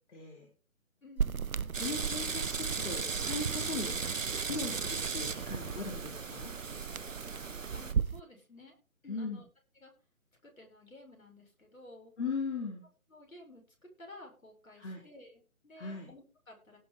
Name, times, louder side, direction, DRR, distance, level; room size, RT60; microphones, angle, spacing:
voice 1, 0.1-0.5 1.8-4.0 4.4-6.5 9.1-9.4 12.2-12.8 14.8-15.0 15.8-16.1, left 4 dB, 55° left, -1 dB, 4.0 m, -39 dB
voice 2, 1.0-1.9 7.7-8.8 9.0-9.4 9.8-9.9 10.4-12.1 13.1-16.8, left 2 dB, 70° left, 2 dB, 7.2 m, -54 dB
sound 1, 1.2-8.2, right 7 dB, 80° right, 0.7 m, -37 dB
sound 2, 1.7-7.9, right 5 dB, 60° right, 1.4 m, -37 dB
18.0 x 7.4 x 3.7 m, 0.34 s
figure-of-eight pair, 145°, 42 cm